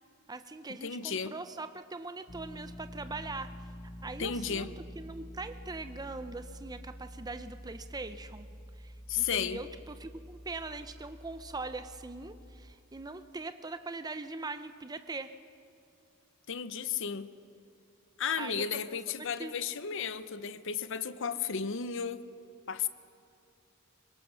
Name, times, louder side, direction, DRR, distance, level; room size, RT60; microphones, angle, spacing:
voice 1, 0.3-3.5 4.0-8.5 8.8-15.3 18.4-19.5, right 3 dB, 20° right, 0.6 m, -41 dB
voice 2, 0.8-1.3 4.2-4.7 9.1-9.6 16.5-17.3 18.2-22.2 22.7-22.9, left 7 dB, 65° left, 0.8 m, -33 dB
sound 1, 2.3-12.7, equal, 30° left, 1.0 m, -48 dB
24.0 x 21.5 x 6.3 m
head